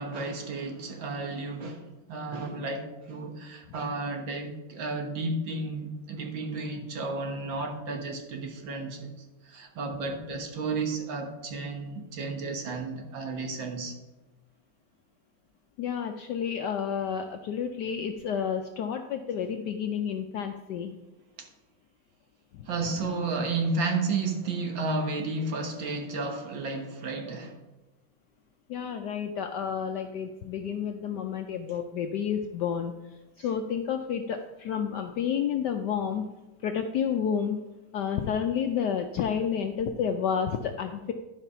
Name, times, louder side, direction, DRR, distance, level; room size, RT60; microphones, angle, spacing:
voice 1, 0.0-9.1 9.4-13.9 21.4-21.5 22.7-27.6, right 3 dB, 65° right, 1.9 m, -32 dB
voice 2, 15.8-20.9 22.5-22.7 28.7-32.9 33.4-36.2 36.6-37.6 37.9-41.1, left 7 dB, 75° left, 1.0 m, -30 dB
11.5 x 4.9 x 5.5 m
omnidirectional pair, 2.3 m